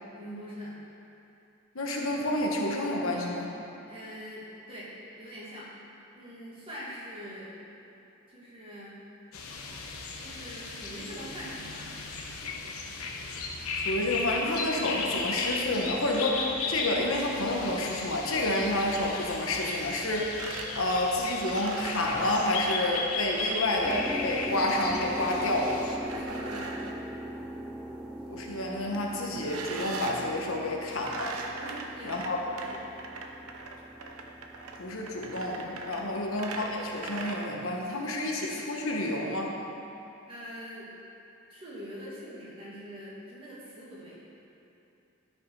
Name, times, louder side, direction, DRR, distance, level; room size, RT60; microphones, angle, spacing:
voice 1, 0.1-0.8 3.9-4.9 5.2-5.7 6.1-7.5 8.3-9.0 10.2-11.9 26.1-26.7 31.6-32.8 36.0-36.2 40.3-40.9 41.5-44.2, equal, 25° right, -7 dB, 2.2 m, -43 dB
voice 2, 1.7-3.5 13.7-20.4 20.8-25.8 28.3-31.4 32.0-32.4 34.8-39.5, left 1 dB, 65° left, -1 dB, 1.2 m, -29 dB
sound 1, 9.3-26.0, left 3 dB, 85° left, 1.0 m, -36 dB
sound 2, 20.4-24.7 25.9-27.0 29.4-30.3 31.0-37.5, right 3 dB, 80° right, 0.8 m, -40 dB
sound 3, 23.8-37.4, equal, 5° right, 0.3 m, -41 dB
12.5 x 5.8 x 5.5 m, 2.8 s
head